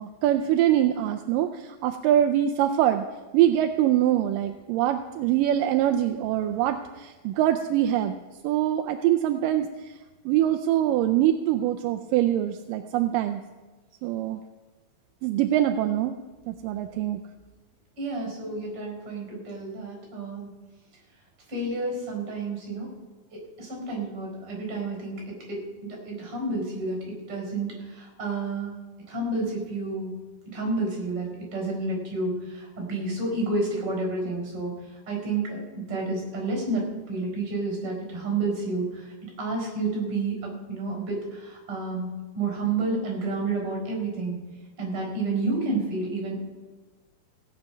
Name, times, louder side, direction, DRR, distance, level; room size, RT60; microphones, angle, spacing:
voice 1, 0.0-3.0 3.3-8.2 8.4-9.9 10.3-13.4 14.0-14.4 15.2-16.1 16.5-17.2, right 12 dB, 80° right, 6 dB, 2.0 m, -24 dB
voice 2, 18.0-20.5 21.5-22.9 23.3-28.8 29.1-30.2 30.5-34.7 35.1-39.1 39.4-44.4 44.8-46.4, right 3 dB, 35° right, -1 dB, 5.3 m, -30 dB
17.0 x 8.9 x 5.8 m, 1.3 s
omnidirectional pair, 4.2 m